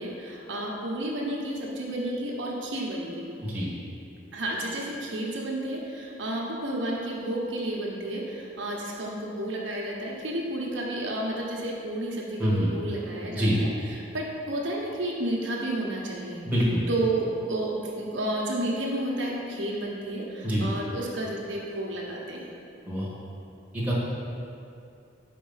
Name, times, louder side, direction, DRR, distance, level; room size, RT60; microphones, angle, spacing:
voice 1, 0.0-3.3 4.3-16.4 16.9-22.5, right 1 dB, 80° right, -3 dB, 1.0 m, -31 dB
voice 2, 16.4-16.8 20.4-20.7 22.8-23.1 23.7-23.9, equal, 10° right, -7 dB, 1.4 m, -25 dB
5.1 x 4.6 x 5.6 m, 2.5 s
head